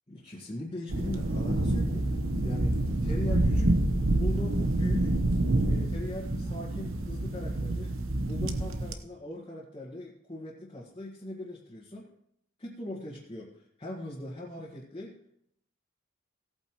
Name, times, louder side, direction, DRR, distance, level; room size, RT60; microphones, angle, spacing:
voice 1, 0.1-2.1 2.4-3.8 4.1-5.1 5.6-7.9 8.2-12.1 12.6-15.3, left 1 dB, 25° left, -6 dB, 1.8 m, -40 dB
sound 1, 0.9-8.9, right 1 dB, 85° right, 1.0 m, -27 dB
17.0 x 8.7 x 3.1 m, 0.71 s
head